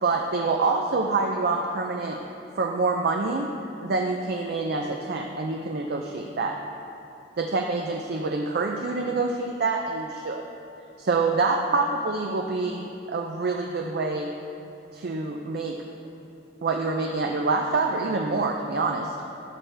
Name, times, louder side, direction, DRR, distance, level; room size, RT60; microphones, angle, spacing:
voice 1, 0.0-2.2 2.6-3.5 3.8-6.5 7.4-10.4 11.0-14.3 14.9-15.8 16.6-19.2, right 3 dB, 55° right, 2 dB, 0.5 m, -26 dB
11.5 x 6.3 x 3.3 m, 2.8 s
head